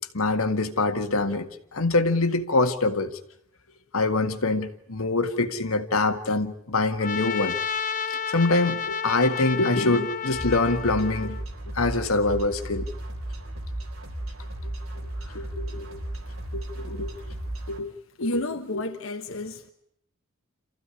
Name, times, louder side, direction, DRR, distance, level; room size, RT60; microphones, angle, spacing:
voice 1, 0.1-3.2 3.9-7.6 8.3-11.4 11.7-12.9 15.3-16.0 16.5-17.1 17.7-17.9 18.2-18.4 18.7-18.8, left 2 dB, 90° left, 1.8 m, -24 dB
Trumpet, 7.0-11.4, left 6 dB, 40° left, 0.9 m, -31 dB
sound 1, 10.3-17.8, right 1 dB, 80° right, 3.6 m, -35 dB
voice 2, 18.2-19.7, left 1 dB, 70° left, 1.3 m, -31 dB
27.5 x 15.0 x 9.9 m
head